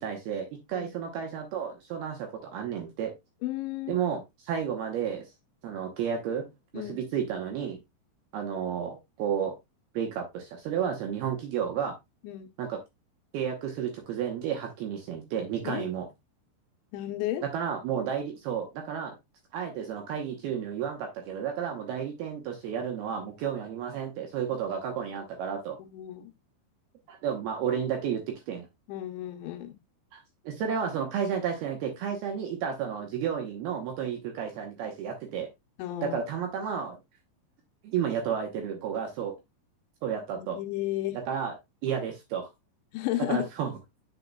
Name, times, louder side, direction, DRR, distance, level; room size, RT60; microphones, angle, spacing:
voice 1, 0.0-3.1 3.9-5.3 5.6-6.4 6.7-7.8 8.3-9.6 9.9-11.9 12.6-12.8 13.3-16.1 17.4-19.1 19.5-25.8 27.1-28.7 30.1-35.5 36.0-37.0 37.8-39.4 40.0-40.6 41.3-41.5 41.8-42.4 43.3-43.7, right 8 dB, 70° right, 2.5 m, -32 dB
voice 2, 3.4-4.0 6.7-7.0 12.2-12.5 15.6-15.9 16.9-17.4 25.8-26.3 28.9-29.8 35.8-36.2 40.4-41.2 42.9-43.5, left 14 dB, 80° left, 3.0 m, -33 dB
8.1 x 6.5 x 2.2 m
omnidirectional pair, 5.5 m